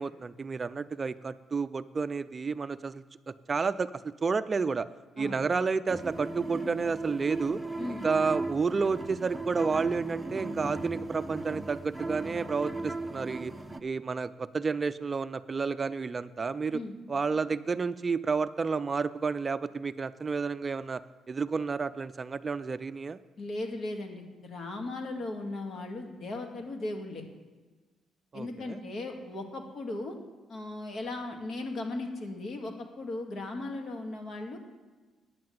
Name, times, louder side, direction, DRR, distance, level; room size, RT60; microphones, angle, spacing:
voice 1, 0.0-3.9 4.2-4.9 5.2-7.6 7.9-13.5 13.8-16.8 17.1-21.0 21.3-23.2 28.3-28.8, right 4 dB, 35° right, 13 dB, 0.4 m, -31 dB
sound 1, 5.9-13.8, right 2 dB, 10° right, 0.8 m, -37 dB
voice 2, 23.4-27.2 28.3-30.2 30.5-34.6, left 2 dB, 60° left, 3 dB, 1.9 m, -37 dB
9.4 x 7.7 x 7.6 m, 1.3 s
cardioid pair, 90°, 0 cm